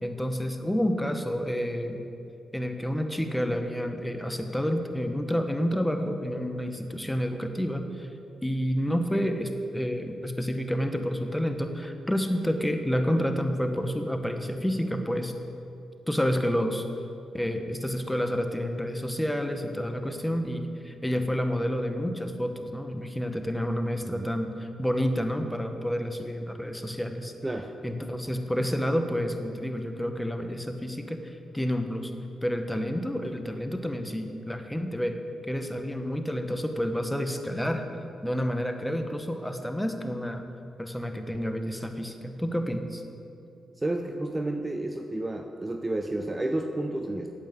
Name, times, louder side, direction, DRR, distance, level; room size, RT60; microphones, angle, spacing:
voice 1, 0.0-2.0 2.5-8.1 8.4-15.3 16.1-16.8 17.3-27.3 27.8-32.1 32.4-35.2 35.5-37.8 38.2-40.4 40.8-43.0, equal, 5° left, 6 dB, 1.2 m, -29 dB
voice 2, 43.8-47.3, right 1 dB, 20° right, 5 dB, 0.8 m, -31 dB
8.6 x 8.3 x 8.2 m, 2.7 s
cardioid pair, 60°, 0 cm